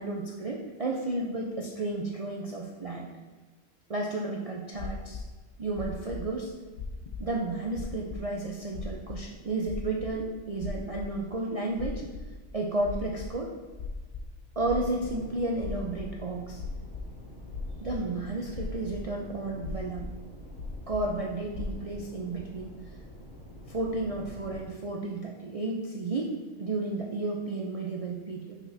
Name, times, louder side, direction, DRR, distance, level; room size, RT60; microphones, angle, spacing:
voice 1, 0.0-3.1 3.9-5.2 5.6-6.5 7.2-12.0 12.5-13.5 14.6-16.6 17.8-20.1 20.9-22.7 23.7-28.5, right 2 dB, 70° right, -1 dB, 0.3 m, -32 dB
sound 1, 4.7-5.2 5.7-6.2 6.7-7.2 7.5-8.2 8.5-11.2 11.7-12.4 12.6-16.2 16.5-17.1 17.5-18.1 18.5-19.1 19.6-20.1 20.5-21.1 21.5-21.7, left 4 dB, 65° left, 0.4 m, -38 dB
sound 2, 14.6-24.6, equal, 90° left, 2.4 m, -47 dB
6.0 x 5.9 x 2.7 m, 1.4 s
omnidirectional pair, 1.4 m